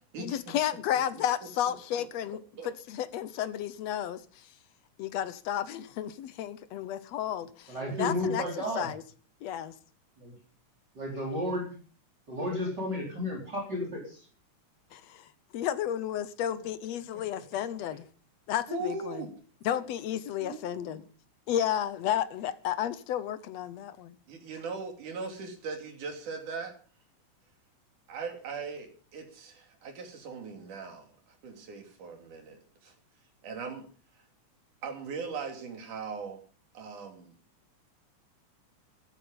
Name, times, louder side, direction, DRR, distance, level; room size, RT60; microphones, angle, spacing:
voice 1, 0.2-4.5 5.0-8.4 8.7-9.0 9.4-9.7 14.9-18.1 18.5-19.2 19.6-21.0 21.5-24.2, left 10 dB, 70° left, 1.7 m, -32 dB
voice 2, 1.7-2.1 2.6-2.7 18.7-19.3 20.4-21.0 24.3-26.8 28.1-31.1 31.4-32.9 33.4-33.9 34.8-36.4 36.7-37.3, right 4 dB, 75° right, 4.4 m, -39 dB
voice 3, 7.7-8.9 10.2-10.3 10.9-11.7 12.3-14.3, left 1 dB, 30° right, 4.8 m, -32 dB
14.5 x 13.5 x 5.5 m
omnidirectional pair, 3.6 m